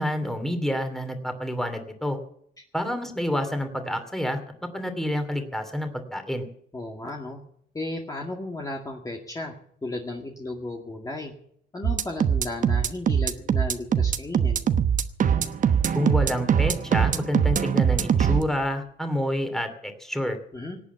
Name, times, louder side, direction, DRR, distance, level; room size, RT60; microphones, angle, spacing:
voice 1, 0.0-2.2 2.7-4.4 4.7-6.5 15.9-20.4, left 1 dB, ahead, 6 dB, 2.7 m, -28 dB
voice 2, 6.7-7.4 7.7-9.5 9.8-11.3 11.7-14.7 20.5-20.8, left 2 dB, 20° left, 0 dB, 2.1 m, -34 dB
sound 1, 11.8-18.4, right 8 dB, 45° right, 1.1 m, -22 dB
18.5 x 8.5 x 8.2 m, 0.66 s
cardioid pair, 110°, 19 cm